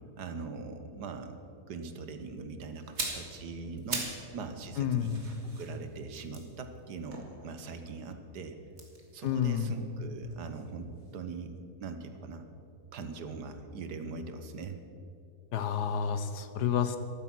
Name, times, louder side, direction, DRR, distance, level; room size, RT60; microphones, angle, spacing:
voice 1, 0.2-1.4 1.7-5.1 5.4-8.6 9.1-11.5 11.8-12.5 12.9-14.8, right 4 dB, 90° right, 8 dB, 1.6 m, -41 dB
sound 1, 2.8-4.3 4.6-7.9 8.7-10.7 11.0-11.2, right 2 dB, 45° right, 2.3 m, -41 dB
voice 2, 4.8-5.2 9.2-9.7 15.5-17.0, left 8 dB, 90° left, 10 dB, 1.5 m, -29 dB
14.0 x 12.0 x 6.0 m, 2.6 s
omnidirectional pair, 1.7 m